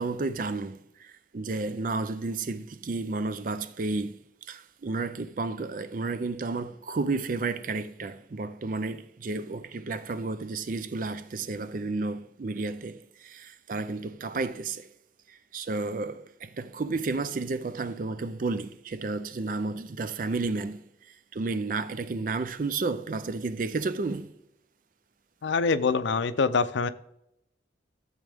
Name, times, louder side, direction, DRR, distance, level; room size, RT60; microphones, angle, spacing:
voice 1, 0.0-4.2 4.5-14.9 15.3-20.8 21.3-24.3, right 3 dB, 45° right, 0.4 m, -32 dB
voice 2, 25.4-26.9, left 4 dB, 75° left, 0.5 m, -25 dB
14.0 x 7.5 x 3.5 m
head